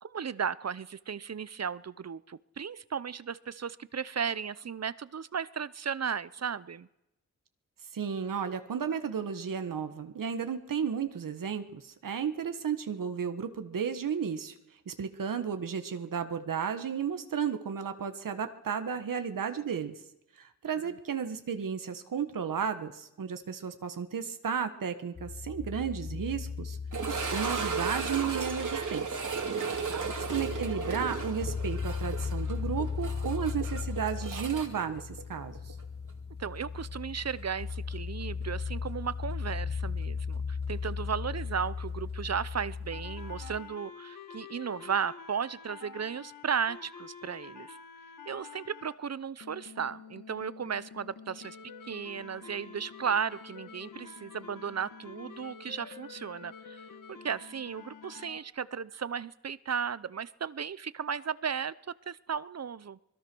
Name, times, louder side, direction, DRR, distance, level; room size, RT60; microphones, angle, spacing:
voice 1, 0.0-6.9 20.8-20.9 29.5-30.1 36.4-47.8 48.3-51.6 51.9-56.8 57.1-63.0, right 7 dB, 50° right, 18 dB, 0.8 m, -35 dB
voice 2, 7.9-14.6 14.9-20.0 20.4-26.8 27.1-29.2 29.9-35.7, right 7 dB, 85° right, 8 dB, 1.5 m, -33 dB
sound 1, 25.2-43.6, left 5 dB, 30° left, 0.7 m, -37 dB
sound 2, 26.9-35.8 36.1-36.2 36.8-36.9 39.5-39.6, right 5 dB, 70° right, 2.9 m, -35 dB
sound 3, 42.9-49.0 49.4-58.4, left 6 dB, 80° left, 1.8 m, -48 dB
24.5 x 21.0 x 6.2 m, 0.87 s
cardioid pair, 60°, 32 cm